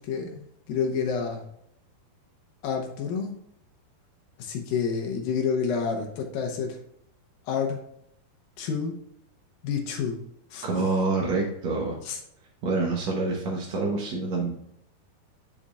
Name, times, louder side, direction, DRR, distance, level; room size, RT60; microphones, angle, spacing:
voice 1, 0.0-1.5 2.6-3.4 4.4-6.8 7.5-7.8 8.6-9.0 9.6-10.2 10.5-10.7 12.0-12.2, left 6 dB, 75° left, 2 dB, 2.3 m, -29 dB
voice 2, 10.6-12.0 12.6-14.5, right 3 dB, 75° right, -2 dB, 1.6 m, -27 dB
7.5 x 6.9 x 2.4 m, 0.76 s
omnidirectional pair, 4.6 m